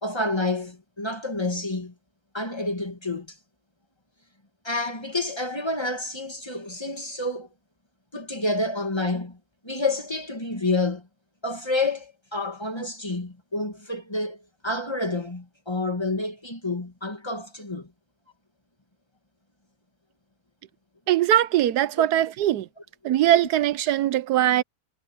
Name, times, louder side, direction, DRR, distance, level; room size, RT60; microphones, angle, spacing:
voice 1, 0.0-1.9 2.3-3.3 4.6-7.5 8.1-9.4 9.6-11.1 11.4-14.4 14.6-17.9 22.0-22.1, left 2 dB, 15° left, 2.1 m, -29 dB
voice 2, 21.1-22.7 23.0-24.6, right 12 dB, 85° right, 1.3 m, -21 dB
omnidirectional pair, 1.6 m